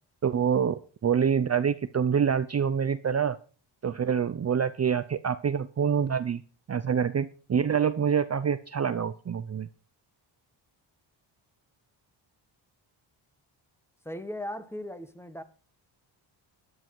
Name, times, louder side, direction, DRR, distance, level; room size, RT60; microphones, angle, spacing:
voice 1, 0.2-3.4 3.8-6.4 6.7-9.7, right 7 dB, 35° right, 0.7 m, -26 dB
voice 2, 14.0-15.4, left 1 dB, 5° left, 1.3 m, -37 dB
13.5 x 9.5 x 4.7 m
cardioid pair, 85°, 48 cm